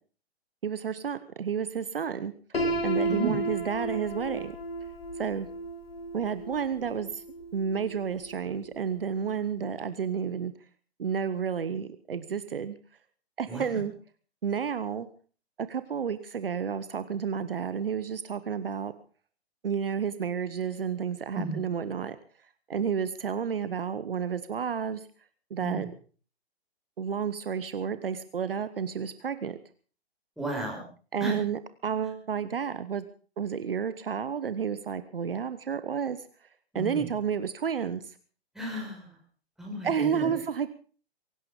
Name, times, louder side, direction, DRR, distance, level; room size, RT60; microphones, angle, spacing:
voice 1, 0.6-2.3 2.8-4.6 5.2-5.5 6.1-7.2 7.5-10.5 11.0-12.8 13.4-13.9 14.4-15.1 15.6-18.9 19.6-22.2 22.7-25.0 25.5-25.9 27.0-29.6 31.1-33.0 33.4-36.2 36.7-38.1 39.8-40.7, right 7 dB, 60° right, 13 dB, 1.2 m, -31 dB
Piano, 2.5-8.4, right 1 dB, 65° left, 3.6 m, -33 dB
voice 2, 30.4-30.8 31.2-31.4 36.7-37.1 38.5-39.1 39.6-40.3, right 1 dB, ahead, -2 dB, 5.6 m, -33 dB
23.0 x 12.0 x 5.2 m, 0.40 s
figure-of-eight pair, 120°, 31 cm